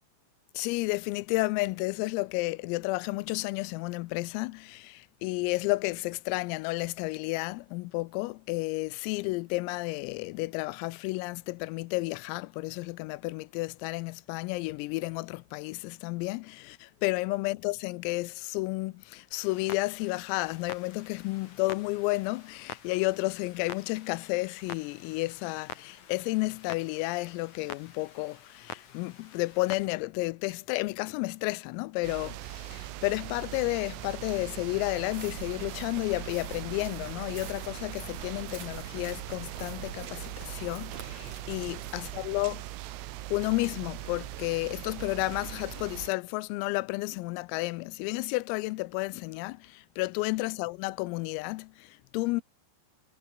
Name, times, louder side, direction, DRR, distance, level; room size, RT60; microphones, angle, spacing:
voice 1, 0.5-42.6 43.3-52.4, left 23 dB, 85° left, 3.4 m, -32 dB
Clock, 19.3-29.9, left 7 dB, 45° left, 3.2 m, -47 dB
sound 1, 32.0-46.1, right 15 dB, 75° right, 3.8 m, -41 dB
sound 2, 35.1-42.2, right 5 dB, 35° right, 4.2 m, -46 dB
omnidirectional pair, 6.0 m